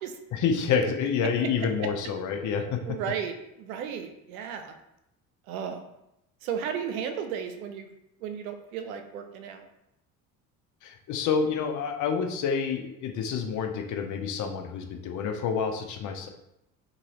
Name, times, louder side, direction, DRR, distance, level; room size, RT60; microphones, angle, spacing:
voice 1, 0.3-3.0 10.8-16.3, left 6 dB, 45° left, 4 dB, 0.6 m, -28 dB
voice 2, 2.9-4.8 5.5-5.8 6.4-7.9 8.2-9.7, right 7 dB, 80° right, 6 dB, 0.6 m, -34 dB
2.9 x 2.6 x 2.9 m, 0.84 s
hypercardioid pair, 70°, 42 cm